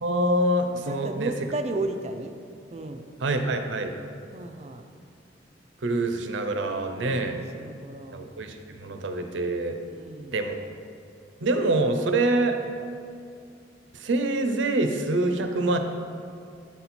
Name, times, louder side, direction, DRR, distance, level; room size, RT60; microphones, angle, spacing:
voice 1, 0.0-1.3 3.2-3.9 5.8-7.4 8.1-9.8 10.3-10.6 11.4-12.6 13.9-15.8, right 2 dB, 85° right, 6 dB, 0.6 m, -25 dB
voice 2, 0.9-2.4 2.7-3.1 4.3-4.8 7.0-8.2 9.9-10.4, right 2 dB, 35° right, 7 dB, 0.4 m, -34 dB
8.6 x 4.3 x 4.2 m, 2.4 s
head